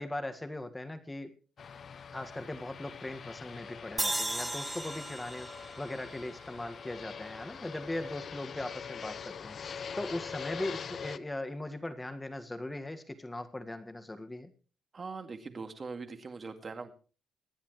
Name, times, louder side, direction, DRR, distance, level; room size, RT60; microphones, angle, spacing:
voice 1, 0.0-1.3 2.1-5.5 5.8-14.5, left 1 dB, 15° left, 7 dB, 1.8 m, -39 dB
Fixed-wing aircraft airplane, 1.6-11.2, left 6 dB, 50° left, 0.7 m, -44 dB
sound 1, 4.0-7.3, right 1 dB, 10° right, 0.6 m, -37 dB
voice 2, 14.9-16.9, right 4 dB, 35° right, 6 dB, 2.1 m, -41 dB
24.0 x 9.9 x 3.2 m, 0.37 s
cardioid pair, 90°, 0 cm